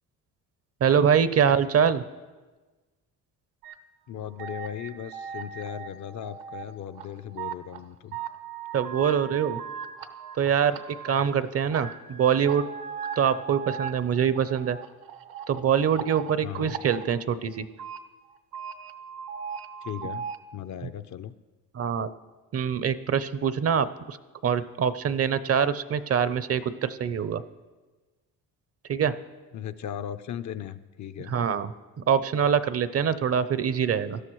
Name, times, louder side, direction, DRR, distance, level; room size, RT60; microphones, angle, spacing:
voice 1, 0.8-2.0 8.7-9.6 10.3-12.7 13.2-14.8 15.5-17.7 21.7-22.1 22.5-24.2 24.4-27.4 28.9-29.1 31.3-31.7 32.1-34.2, right 7 dB, 40° right, 14 dB, 0.6 m, -24 dB
sound 1, 3.6-3.7 4.4-6.6 6.9-7.8 8.1-11.4 11.7-17.0 17.6-18.0 18.3-20.4, right 7 dB, 75° right, 0.9 m, -38 dB
voice 2, 4.1-8.2 16.4-16.7 19.8-20.3 20.5-21.3 29.5-31.3, left 10 dB, 55° left, 11 dB, 0.6 m, -37 dB
17.5 x 12.5 x 3.1 m, 1.3 s
cardioid pair, 90°, 35 cm